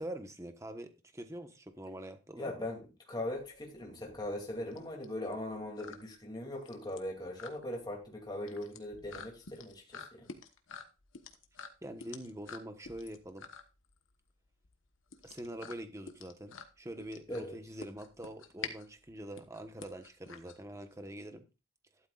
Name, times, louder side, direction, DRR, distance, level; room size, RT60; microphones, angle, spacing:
voice 1, 0.0-2.5 11.8-13.5 15.2-21.4, right 1 dB, 15° right, 1.2 m, -44 dB
voice 2, 2.4-2.8 3.1-10.3 17.3-17.6, left 1 dB, 20° left, 2.7 m, -40 dB
sound 1, 3.3-21.1, left 5 dB, 85° left, 1.3 m, -49 dB
12.5 x 12.0 x 2.4 m
head